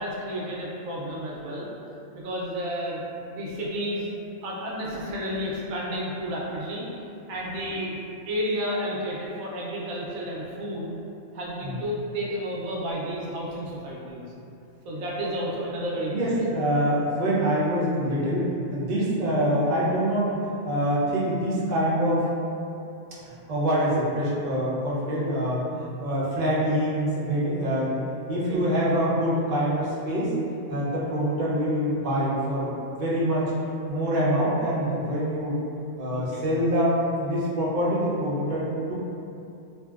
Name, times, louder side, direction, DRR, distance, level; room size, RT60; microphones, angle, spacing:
voice 1, 0.0-1.7 2.1-4.1 4.4-6.9 7.3-10.9 11.3-14.3 14.8-16.3 28.3-28.6 36.1-36.4, equal, 80° right, -5 dB, 1.0 m, -31 dB
voice 2, 16.1-20.3 20.6-22.3 23.2-28.0 28.3-30.3 30.7-33.5 33.9-35.6 36.0-38.9, equal, 50° right, -8 dB, 0.6 m, -25 dB
2.7 x 2.7 x 2.3 m, 2.7 s
omnidirectional pair, 1.5 m